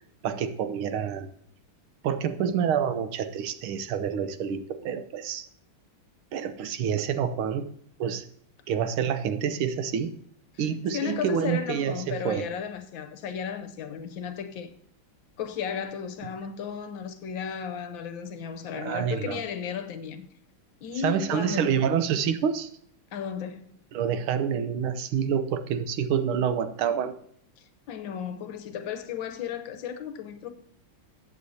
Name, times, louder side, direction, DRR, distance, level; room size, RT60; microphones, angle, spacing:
voice 1, 0.2-1.3 2.0-5.5 6.3-7.7 8.0-8.3 8.7-10.1 10.6-12.5 18.7-19.4 21.0-22.7 23.9-27.1, right 8 dB, 85° right, 1.7 m, -27 dB
voice 2, 10.9-14.7 15.4-20.3 20.8-21.8 23.1-23.7 27.6-30.5, left 7 dB, 70° left, 1.5 m, -34 dB
14.0 x 8.4 x 2.8 m
omnidirectional pair, 2.3 m